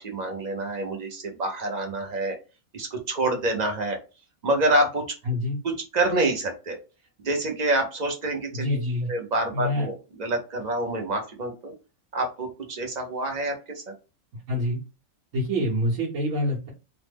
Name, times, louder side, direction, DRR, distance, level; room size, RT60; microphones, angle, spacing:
voice 1, 0.0-2.4 2.7-4.0 4.4-5.0 5.6-6.8 7.2-8.8 9.1-11.7 12.1-13.9, right 2 dB, 50° right, 3 dB, 0.5 m, -27 dB
voice 2, 5.3-5.6 8.5-9.1 9.5-9.9 14.5-14.8 15.3-16.7, left 1 dB, 75° right, -5 dB, 1.2 m, -26 dB
3.0 x 2.0 x 3.3 m, 0.31 s
omnidirectional pair, 1.5 m